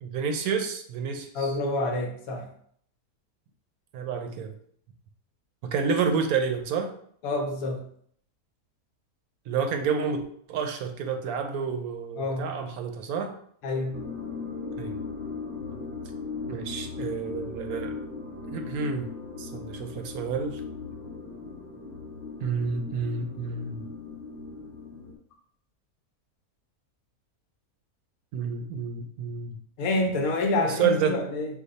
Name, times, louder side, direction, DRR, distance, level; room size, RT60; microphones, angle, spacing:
voice 1, 0.0-1.6 3.9-4.5 5.6-6.9 9.5-13.3 14.8-15.0 16.5-18.0 18.5-19.1 19.4-20.6 22.4-23.8 28.3-29.6 30.6-31.2, right 5 dB, 75° right, 6 dB, 1.0 m, -29 dB
voice 2, 1.3-2.5 7.2-7.8 12.2-12.5 13.6-14.0 29.8-31.5, left 2 dB, 70° left, 3 dB, 1.1 m, -27 dB
sound 1, 13.9-25.1, left 4 dB, 40° right, 0.8 m, -38 dB
5.0 x 2.3 x 4.0 m, 0.63 s
omnidirectional pair, 1.7 m